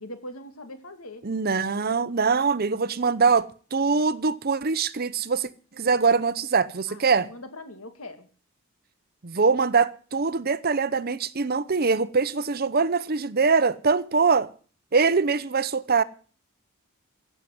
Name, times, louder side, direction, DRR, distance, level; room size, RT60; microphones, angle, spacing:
voice 1, 0.0-1.2 6.9-8.3, left 1 dB, 70° left, 2.5 m, -41 dB
voice 2, 1.2-5.5 5.8-7.3 9.2-14.5 14.9-16.0, right 4 dB, 45° right, 0.7 m, -23 dB
16.0 x 7.6 x 9.5 m
head